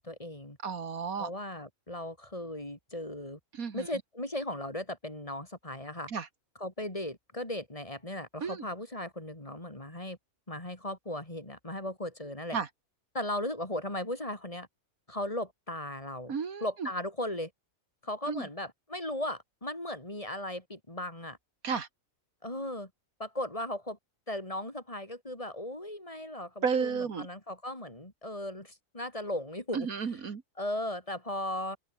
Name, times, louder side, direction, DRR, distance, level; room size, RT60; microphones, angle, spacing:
voice 1, 0.0-0.6 1.2-3.4 3.7-6.1 6.6-10.2 10.5-12.6 13.1-14.7 15.1-16.3 16.6-17.5 18.0-21.4 22.4-22.9 23.2-24.0 24.3-29.9 30.6-31.8, left 1 dB, 25° left, 3.7 m, -37 dB
voice 2, 0.6-1.3 3.6-3.9 6.1-6.3 8.4-8.7 12.5-12.7 16.3-16.9 18.3-18.5 21.6-21.9 26.6-27.3 29.7-30.4, right 6 dB, 85° right, 2.2 m, -32 dB
open air
omnidirectional pair, 1.5 m